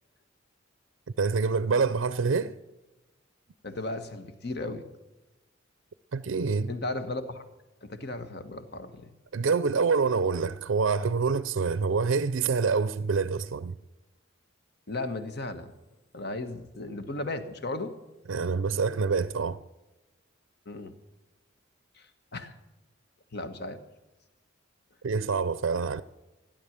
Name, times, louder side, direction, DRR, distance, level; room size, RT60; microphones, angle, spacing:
voice 1, 1.2-2.5 6.1-6.7 9.3-13.8 18.3-19.6 25.0-26.0, right 5 dB, 75° right, 0.5 m, -26 dB
voice 2, 3.6-4.8 6.7-7.4 7.8-9.1 14.9-15.7 16.1-17.9 20.6-20.9 22.0-22.1 22.3-22.5 23.3-23.8, left 2 dB, 55° left, 1.3 m, -35 dB
15.5 x 10.5 x 7.3 m
head